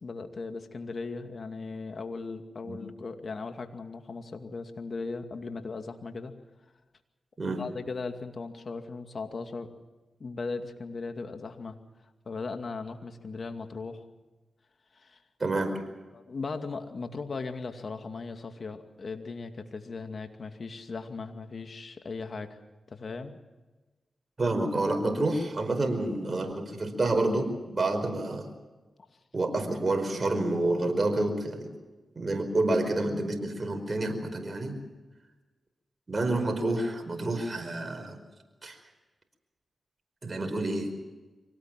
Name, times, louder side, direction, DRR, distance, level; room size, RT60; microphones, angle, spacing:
voice 1, 0.0-6.3 7.4-9.7 10.2-11.8 12.3-14.0 14.9-15.2 16.1-22.6 22.9-23.4, left 4 dB, 60° left, 6 dB, 2.3 m, -38 dB
voice 2, 15.4-15.8 24.4-28.5 29.3-31.7 32.1-34.8 36.1-38.2 38.6-38.8 40.2-40.9, right 2 dB, 45° right, 5 dB, 5.1 m, -28 dB
24.5 x 18.5 x 7.6 m, 1.2 s
supercardioid pair, 40°, 0 cm